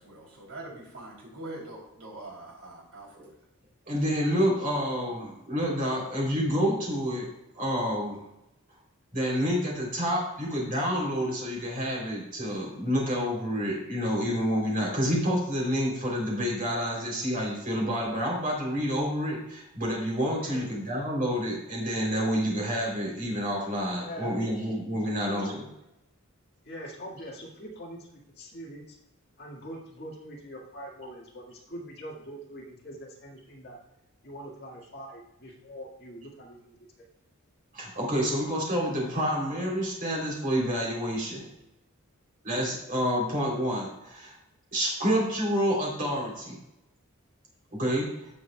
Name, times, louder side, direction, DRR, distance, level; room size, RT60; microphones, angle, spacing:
voice 1, 0.0-3.3, right 2 dB, 75° right, -2 dB, 3.1 m, -43 dB
voice 2, 3.9-7.3 7.6-8.2 9.1-25.6 37.7-41.5 42.4-44.3 44.7-46.6 47.7-48.1, equal, 40° right, -2 dB, 3.4 m, -28 dB
voice 3, 23.9-24.4 25.0-25.4 26.6-29.0 29.4-33.8 34.2-37.1, equal, 45° left, -2 dB, 1.9 m, -43 dB
16.0 x 6.2 x 2.3 m, 0.90 s
head